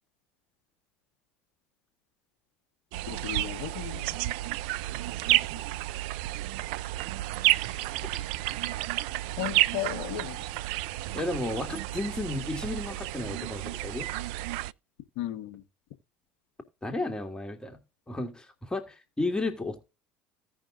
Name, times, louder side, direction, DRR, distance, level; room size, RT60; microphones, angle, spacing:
sound 1, 2.9-14.7, right 16 dB, 70° right, 0.3 m, -31 dB
voice 1, 3.1-4.1 9.4-10.4 15.2-15.6, left 12 dB, 70° left, 1.1 m, -35 dB
voice 2, 7.5-7.8 11.1-14.1 16.8-17.8 18.1-19.9, left 2 dB, 15° left, 1.9 m, -33 dB
16.5 x 5.5 x 2.5 m
hypercardioid pair, 70°, 6 cm